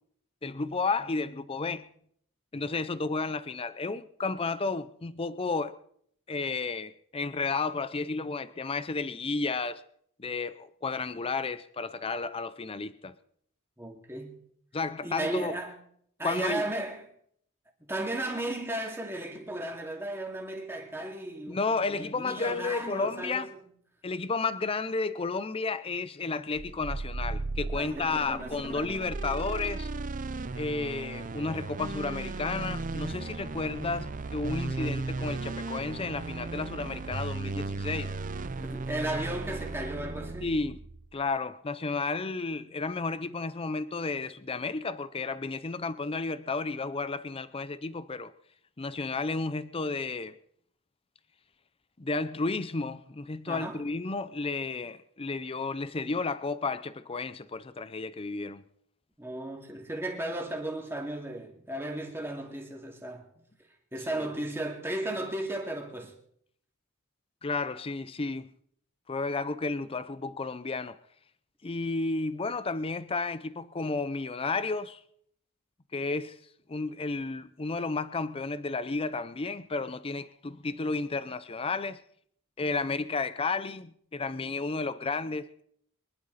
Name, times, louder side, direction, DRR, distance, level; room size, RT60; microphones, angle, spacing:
voice 1, 0.4-1.9 2.5-5.8 6.3-9.8 10.2-13.1 14.7-15.6 16.2-16.6 21.5-23.5 24.0-29.9 30.6-38.1 40.4-40.8 41.1-48.3 48.8-50.4 52.0-58.6 64.2-64.3 67.4-68.5 69.1-71.0 71.6-75.0 75.9-76.4 76.7-82.0 82.6-85.6, left 3 dB, 25° left, 0.5 m, -32 dB
voice 2, 13.8-14.4 15.0-15.8 16.2-17.1 17.8-23.6 27.8-28.9 38.6-40.5 53.5-53.8 59.2-63.4 63.9-66.1, right 1 dB, 10° right, 2.4 m, -35 dB
sound 1, 26.5-41.1, right 3 dB, 35° right, 0.6 m, -36 dB
24.0 x 11.5 x 4.1 m
head